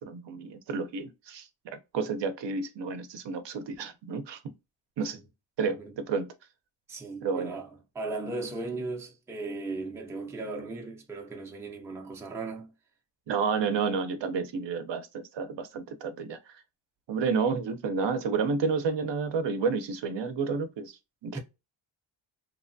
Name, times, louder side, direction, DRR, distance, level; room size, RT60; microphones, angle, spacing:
voice 1, 0.0-4.5 5.0-5.2 5.6-6.3 7.2-7.6 13.3-16.6 17.1-21.4, right 5 dB, 60° right, 0.6 m, -31 dB
voice 2, 6.9-12.7 21.3-21.4, right 3 dB, 5° right, 0.4 m, -37 dB
3.0 x 2.2 x 2.5 m
wide cardioid pair, 130°, 49 cm